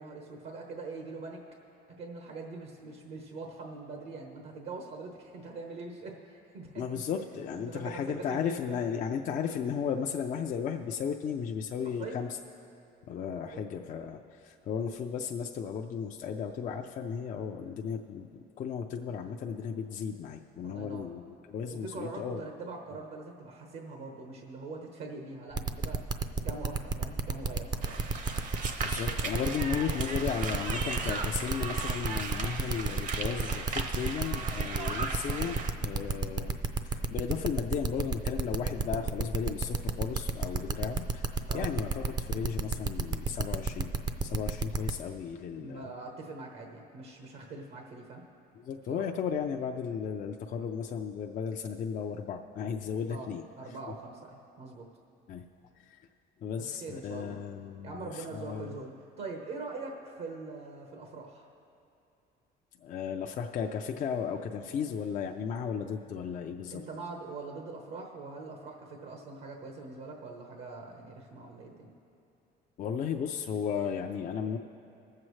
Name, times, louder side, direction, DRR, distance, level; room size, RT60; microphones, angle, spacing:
voice 1, 0.0-1.4 1.9-7.0 7.7-8.8 11.8-12.2 13.5-13.7 20.6-21.1 21.7-26.0 26.4-28.0 41.4-41.7 45.5-48.2 48.9-49.0 53.1-53.3 53.6-54.9 56.6-57.4 57.8-58.9 59.2-61.5 66.7-71.9, right 3 dB, 75° right, 1 dB, 1.1 m, -43 dB
voice 2, 6.8-12.3 13.1-22.4 28.8-36.6 36.8-43.9 44.2-45.9 48.6-53.4 55.3-55.4 55.8-56.0 56.4-58.7 62.8-66.8 72.8-74.6, left 7 dB, 50° left, 2 dB, 0.5 m, -35 dB
sound 1, 25.5-44.9, right 4 dB, 25° right, 0.5 m, -30 dB
sound 2, 27.8-35.7, right 4 dB, 50° right, 0.8 m, -37 dB
22.0 x 7.5 x 3.2 m, 2.6 s
cardioid pair, 110°, 17 cm